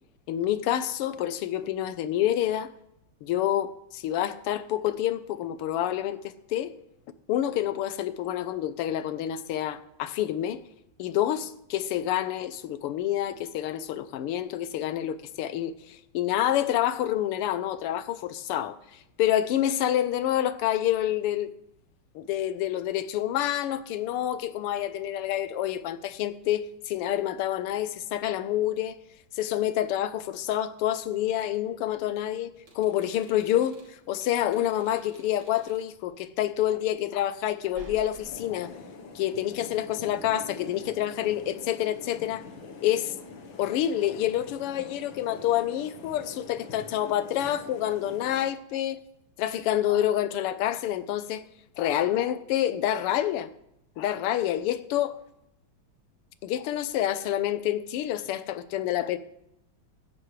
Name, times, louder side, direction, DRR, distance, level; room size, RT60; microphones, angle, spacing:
voice 1, 0.3-2.7 3.2-6.7 7.3-10.6 11.0-21.5 22.2-29.0 29.4-32.5 32.8-38.7 39.2-42.5 42.8-43.1 43.6-49.0 49.4-51.4 51.8-53.5 54.0-55.2 56.4-59.2, left 12 dB, 90° left, 1.7 m, -28 dB
Old Door, 32.6-36.0 37.5-38.6, right 2 dB, 85° right, 3.7 m, -51 dB
sound 1, 38.2-48.5, left 4 dB, 65° left, 1.9 m, -45 dB
16.0 x 11.0 x 3.2 m
omnidirectional pair, 2.4 m